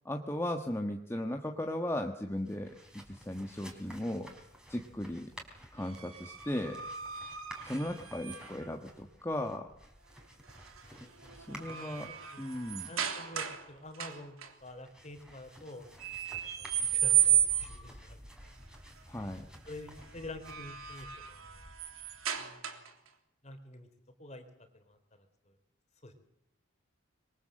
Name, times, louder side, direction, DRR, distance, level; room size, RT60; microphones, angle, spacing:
voice 1, 0.0-2.7 3.1-4.3 4.7-5.3 5.7-6.8 7.6-9.7 11.3-12.1 12.4-12.9 19.1-19.4, left 1 dB, 15° left, 3 dB, 1.5 m, -36 dB
sound 1, 2.3-22.2, equal, 5° right, 4.3 m, -54 dB
sound 2, 5.8-8.7 10.5-10.8 11.2-13.7 13.9-14.5 16.0-17.9 20.2-23.1, right 11 dB, 90° right, 3.3 m, -33 dB
voice 2, 10.8-12.4 12.9-18.4 19.7-21.6 22.4-22.9 23.4-23.9 24.2-25.0 25.5-25.6 26.0-26.1, left 2 dB, 35° left, 7 dB, 3.7 m, -49 dB
26.0 x 22.5 x 7.7 m, 0.78 s
head